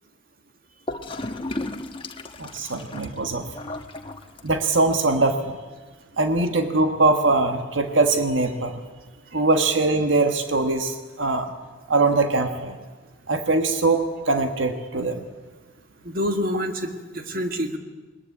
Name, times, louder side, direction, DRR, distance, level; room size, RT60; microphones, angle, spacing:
Gurgling / Toilet flush, 0.9-4.8, left 2 dB, 25° left, 1.2 m, -35 dB
voice 1, 2.4-3.5 4.4-5.6 6.2-8.8 9.3-11.5 11.9-12.8 13.3-15.2, right 3 dB, 80° right, 6 dB, 1.4 m, -22 dB
voice 2, 16.0-17.8, equal, 50° right, 6 dB, 2.0 m, -27 dB
21.0 x 20.5 x 8.4 m, 1.3 s
head